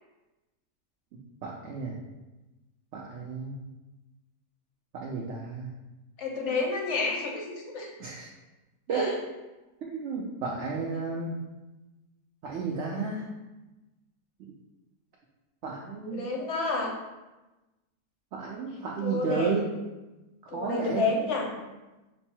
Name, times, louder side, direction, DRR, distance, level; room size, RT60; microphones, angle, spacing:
voice 1, 1.4-1.9 2.9-3.6 4.9-5.7 8.0-8.3 8.9-9.1 9.9-11.4 12.4-13.3 15.6-16.2 18.3-19.6 20.5-21.1, right 4 dB, 65° right, -2 dB, 0.7 m, -32 dB
voice 2, 6.2-7.9 8.9-9.1 16.1-16.9 19.0-19.6 20.5-21.5, left 3 dB, 60° left, 0 dB, 0.9 m, -29 dB
5.3 x 2.0 x 4.4 m, 1.1 s
omnidirectional pair, 1.6 m